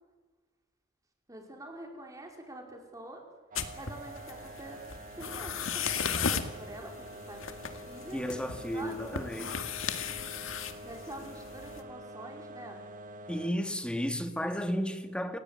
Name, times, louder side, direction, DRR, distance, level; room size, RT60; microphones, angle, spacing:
voice 1, 1.3-3.2 3.7-4.8 5.2-8.2 8.7-9.3 10.8-12.8, right 1 dB, 15° right, 4.9 m, -46 dB
sound 1, 3.5-11.8, left 6 dB, 70° left, 2.1 m, -36 dB
sound 2, 3.5-13.5, right 1 dB, 40° right, 1.6 m, -47 dB
voice 2, 8.1-9.6 13.3-15.4, equal, 5° left, 2.0 m, -33 dB
29.5 x 17.0 x 9.2 m
head